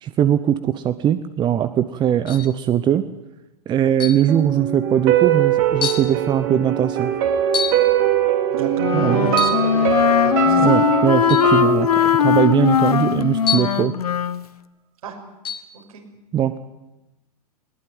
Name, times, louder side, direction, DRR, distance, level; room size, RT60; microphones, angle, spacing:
voice 1, 0.0-3.0 3.7-7.1 8.9-9.3 10.5-13.9 16.3-16.6, right 10 dB, 20° right, 12 dB, 0.9 m, -20 dB
sound 1, 2.3-2.6 4.0-4.3 5.1-5.2 5.8-6.1 7.5-7.9 9.3-9.7 11.3-11.5 13.5-13.9 15.4-15.7, left 6 dB, 25° left, 2.3 m, -27 dB
sound 2, 4.3-13.3 13.6-13.7, right 10 dB, 45° right, 3.3 m, -22 dB
voice 2, 8.5-10.8 15.0-15.2 15.7-16.0, right 6 dB, 60° right, 2 dB, 6.3 m, -31 dB
Wind instrument woodwind instrument, 8.8-14.4, left 9 dB, 70° left, 0.9 m, -19 dB
21.0 x 19.5 x 9.3 m, 0.99 s
figure-of-eight pair, 105°, 20 cm